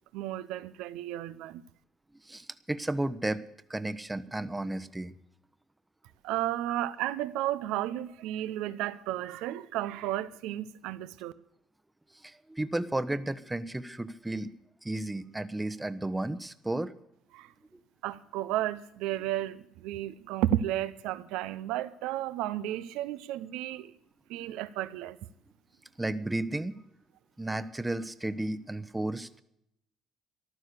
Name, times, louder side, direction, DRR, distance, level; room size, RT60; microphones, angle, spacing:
voice 1, 0.1-1.6 6.2-11.3 17.3-17.5 18.0-23.9 24.3-25.2, right 13 dB, 80° right, 0.7 m, -33 dB
voice 2, 2.2-3.4 3.7-5.1 6.7-6.8 12.2-14.5 14.8-16.9 17.7-17.8 26.0-26.8 27.4-29.3, right 1 dB, 10° right, 0.9 m, -33 dB
14.0 x 12.0 x 6.7 m
supercardioid pair, 70°, 0 cm